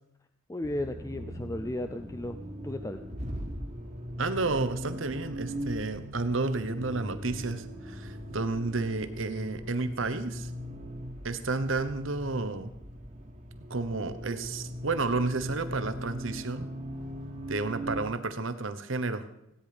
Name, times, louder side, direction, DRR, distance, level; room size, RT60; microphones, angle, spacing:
voice 1, 0.5-2.4 2.6-3.0, left 1 dB, 15° left, 8 dB, 0.4 m, -34 dB
Accelerating revving vroom, 0.6-18.1, equal, 35° right, 1.6 m, -40 dB
voice 2, 4.2-10.5 11.2-12.7 13.7-16.7 17.5-19.2, right 3 dB, 80° right, 11 dB, 1.1 m, -31 dB
16.5 x 9.9 x 5.2 m, 0.80 s
head